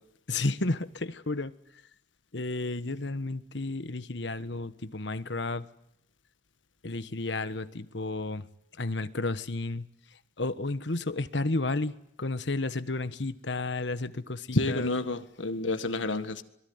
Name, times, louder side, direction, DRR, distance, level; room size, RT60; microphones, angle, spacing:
voice 1, 0.3-1.8 2.3-5.7 6.8-8.5 8.7-14.9, left 2 dB, 70° left, 1.3 m, -32 dB
voice 2, 14.5-16.4, left 2 dB, 85° left, 1.7 m, -29 dB
25.5 x 23.0 x 9.6 m
head